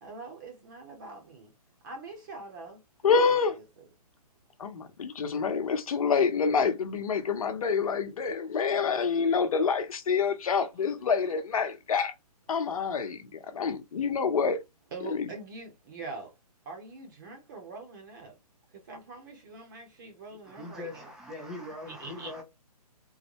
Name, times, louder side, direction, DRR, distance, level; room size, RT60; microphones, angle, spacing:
voice 1, 0.0-1.5 1.8-3.6 10.3-11.3 14.9-16.3 16.7-18.3 18.9-21.1 21.9-22.3, right 3 dB, 30° right, 0.9 m, -44 dB
voice 2, 3.0-3.5 4.6-12.1 12.5-14.6 15.2-15.3, left 5 dB, 60° left, 0.9 m, -27 dB
voice 3, 20.3-22.4, left 2 dB, 5° right, 0.5 m, -41 dB
3.9 x 2.1 x 2.9 m
hypercardioid pair, 160°, 20 cm